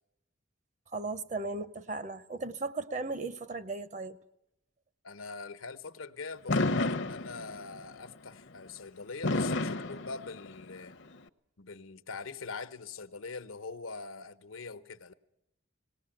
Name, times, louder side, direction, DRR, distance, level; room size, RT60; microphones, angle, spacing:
voice 1, 0.9-4.2, right 3 dB, 35° right, 0.7 m, -36 dB
voice 2, 5.0-11.0 11.6-15.1, left 4 dB, 90° left, 0.9 m, -43 dB
Fireworks, 6.5-7.8 9.2-10.8, left 2 dB, 60° left, 0.7 m, -30 dB
19.0 x 18.0 x 8.9 m
head